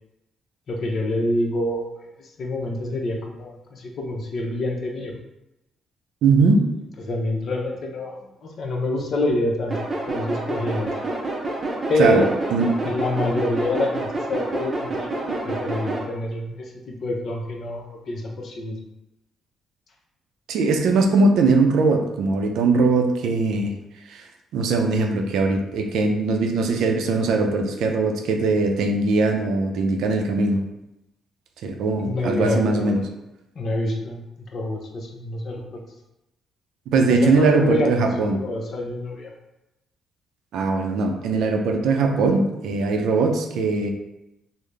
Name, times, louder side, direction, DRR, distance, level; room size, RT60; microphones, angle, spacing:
voice 1, 0.7-1.9 2.2-5.1 7.0-9.8 10.1-10.9 11.9-12.3 12.8-18.8 32.0-33.0 33.6-35.8 37.1-39.3, left 1 dB, 55° left, 1 dB, 0.7 m, -26 dB
voice 2, 6.2-6.6 12.0-12.2 12.5-12.6 20.5-23.7 24.1-24.3 24.5-30.6 31.6-33.0 36.9-38.4 40.5-43.9, right 3 dB, 80° right, 4 dB, 0.5 m, -20 dB
sound 1, 9.7-16.0, right 2 dB, 30° right, 0.6 m, -28 dB
3.8 x 2.0 x 3.3 m, 0.92 s
cardioid pair, 90°, 0 cm